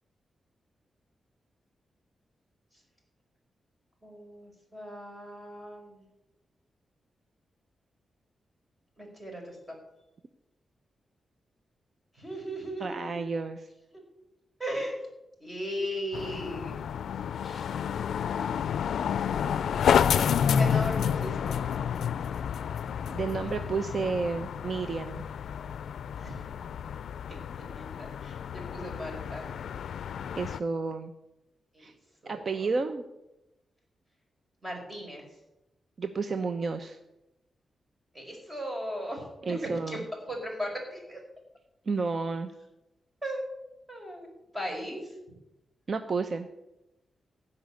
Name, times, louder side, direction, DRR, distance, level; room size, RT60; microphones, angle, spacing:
voice 1, 4.0-6.0 9.0-9.8 12.1-13.2 13.9-14.0 14.6-15.0 15.4-16.8 17.4-17.7 18.3-18.7 20.6-21.6 26.1-26.4 27.3-29.4 31.7-31.9 32.2-32.7 34.6-35.2 38.1-40.0 40.3-41.2 43.2-43.4 43.9-45.2, equal, 20° right, 0 dB, 5.0 m, -37 dB
voice 2, 12.8-13.7 23.1-25.2 30.4-31.1 31.8-31.9 32.3-33.0 36.0-37.0 39.4-40.0 41.9-42.5 45.9-46.5, right 4 dB, 45° right, 8 dB, 0.7 m, -31 dB
sound 1, 16.1-30.6, left 8 dB, 85° left, 0.4 m, -30 dB
16.0 x 5.5 x 9.5 m, 0.94 s
wide cardioid pair, 110°, 0 cm